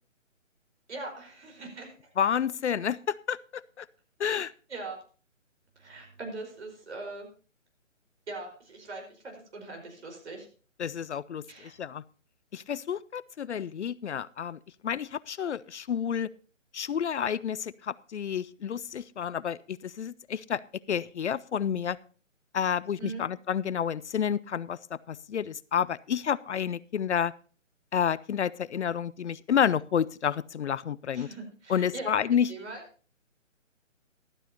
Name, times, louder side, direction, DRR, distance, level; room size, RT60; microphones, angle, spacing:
voice 1, 0.9-2.1 4.7-5.0 5.8-7.3 8.3-10.5 11.5-11.7 23.0-23.3 31.1-32.2 32.5-32.8, right 3 dB, 60° right, 2 dB, 5.0 m, -41 dB
voice 2, 2.2-3.9 4.2-4.5 10.8-12.0 12.5-16.3 16.7-20.6 20.9-22.0 22.5-24.8 25.1-27.3 27.9-31.3 31.7-32.5, left 8 dB, 65° left, 20 dB, 0.5 m, -30 dB
14.5 x 12.5 x 2.8 m, 0.38 s
figure-of-eight pair, 155°, 38 cm